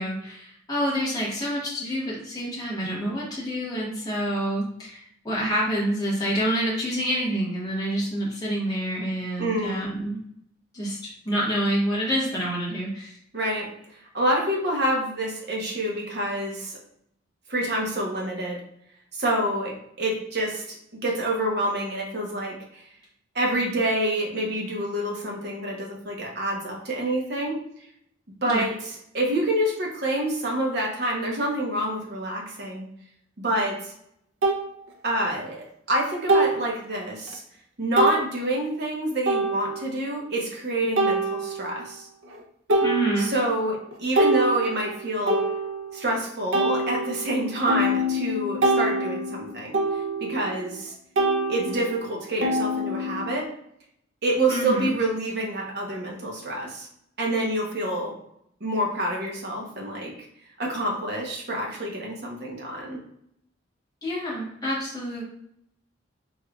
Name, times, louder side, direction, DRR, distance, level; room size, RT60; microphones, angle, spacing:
voice 1, 0.0-10.2 10.7-13.2 28.5-28.6 42.8-43.3 54.5-54.9 64.0-65.2, equal, 20° left, -6 dB, 1.0 m, -27 dB
voice 2, 9.4-9.9 13.3-13.7 14.1-16.8 17.5-18.6 19.1-20.8 21.0-22.8 23.3-27.6 28.4-28.7 29.1-32.8 33.4-33.9 35.0-37.4 37.8-42.1 43.2-45.4 45.9-49.8 50.2-50.9 51.5-53.5 54.2-56.9 57.2-58.1 58.6-60.1 60.6-63.0, right 1 dB, 55° right, -1 dB, 0.9 m, -27 dB
sound 1, 33.6-33.7 34.4-34.6 36.3-36.7 37.3-37.4 38.0-38.2 39.3-39.9 41.0-41.8 42.3-42.4 42.7-43.5 43.9-46.1 46.5-50.9 51.2-53.5, right 1 dB, 80° right, 0.6 m, -25 dB
3.5 x 3.2 x 2.3 m, 0.73 s
head